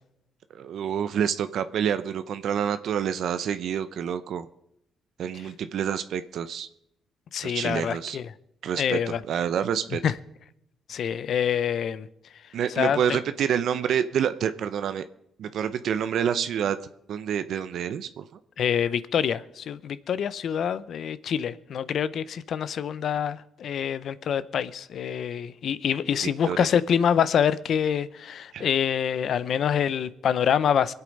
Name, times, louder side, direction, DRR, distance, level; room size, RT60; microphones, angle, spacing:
voice 1, 0.5-4.5 5.2-6.7 7.4-8.2 8.6-10.0 12.5-15.0 15.4-16.8 17.1-18.2 26.4-26.7 28.5-28.7, right 8 dB, 70° right, 0.7 m, -28 dB
voice 2, 7.3-8.2 8.7-9.2 10.0-10.1 10.9-12.1 12.8-13.2 18.6-30.9, left 8 dB, 65° left, 0.7 m, -26 dB
23.0 x 8.2 x 5.3 m
cardioid pair, 90°, 0 cm